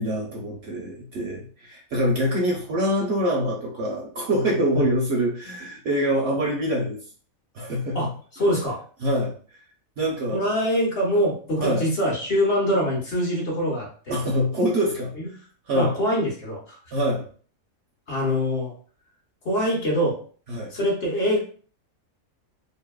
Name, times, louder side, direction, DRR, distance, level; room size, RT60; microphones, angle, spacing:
voice 1, 0.0-7.0 7.5-8.1 9.0-9.3 10.0-10.4 11.6-11.9 14.1-15.1 15.7-15.9 16.9-17.2 20.5-20.7, equal, 60° right, -1 dB, 0.7 m, -25 dB
voice 2, 8.3-8.8 10.3-14.2 15.2-15.3 15.7-16.8 18.1-18.7 19.4-20.2 20.7-21.4, equal, 50° left, -3 dB, 1.0 m, -24 dB
2.7 x 2.7 x 2.2 m, 0.43 s
omnidirectional pair, 1.5 m